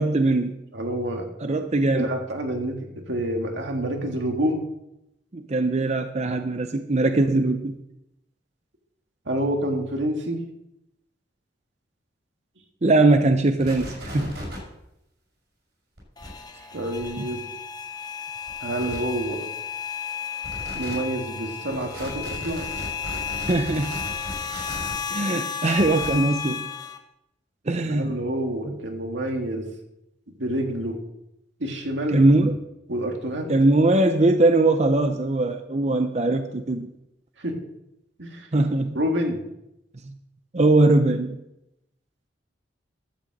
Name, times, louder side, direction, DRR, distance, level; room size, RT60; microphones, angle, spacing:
voice 1, 0.0-0.6 1.4-2.1 5.3-7.7 12.8-14.3 23.5-24.0 25.1-26.7 27.7-28.1 28.7-28.8 32.1-32.6 33.5-36.9 38.5-39.0 40.5-41.4, right 2 dB, 40° right, 7 dB, 0.7 m, -21 dB
voice 2, 0.7-1.2 1.9-4.6 9.3-10.4 16.7-17.4 18.6-19.5 20.7-22.7 27.9-29.7 30.4-31.0 31.6-32.2 32.9-33.5 37.4-37.6 38.2-38.5 38.9-39.4, right 1 dB, 85° right, 3 dB, 2.0 m, -28 dB
sound 1, 13.6-14.6 16.0-16.3 17.0-17.1 18.5-18.6 18.8-19.0 20.4-20.9 21.7-24.9 25.8-26.1, equal, 65° right, 5.9 m, -36 dB
sound 2, 16.2-27.0, left 7 dB, 20° left, 1.0 m, -33 dB
12.5 x 6.3 x 7.7 m, 0.87 s
head